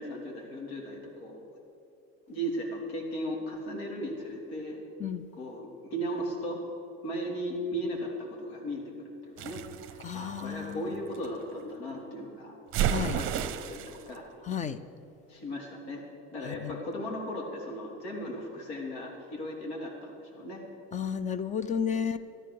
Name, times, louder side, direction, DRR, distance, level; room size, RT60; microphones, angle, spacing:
voice 1, 0.0-1.5 2.3-4.8 5.4-6.6 7.0-9.6 9.9-12.5 12.9-14.2 15.3-16.0 16.3-20.6 21.9-22.2, equal, 85° left, 0 dB, 3.5 m, -37 dB
sound 1, 9.4-11.3 12.7-14.0, right 10 dB, 40° right, 0.7 m, -32 dB
voice 2, 10.0-11.0 12.9-13.2 14.4-14.8 16.4-16.8 20.9-22.2, left 7 dB, 25° left, 14 dB, 0.6 m, -32 dB
13.0 x 12.0 x 6.6 m, 2.6 s
supercardioid pair, 110°, 31 cm